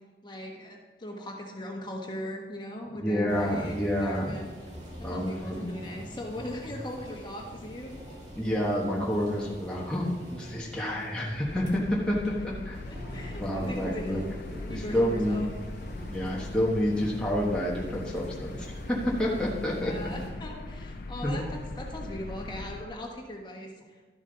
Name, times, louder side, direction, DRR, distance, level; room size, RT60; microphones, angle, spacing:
voice 1, 0.2-4.4 5.1-8.0 12.9-14.2 14.6-15.5 19.8-23.7, left 1 dB, 25° left, 0 dB, 1.4 m, -39 dB
voice 2, 3.0-4.4 5.0-5.8 8.3-12.8 13.4-14.2 14.5-15.5 16.1-19.9 20.2-20.3 21.2-21.4, equal, 5° left, -5 dB, 1.2 m, -29 dB
sound 1, 3.3-20.3, equal, 40° right, 2.4 m, -45 dB
sound 2, 11.4-22.9, left 2 dB, 55° left, 0.5 m, -40 dB
12.0 x 7.2 x 4.0 m, 1.4 s
head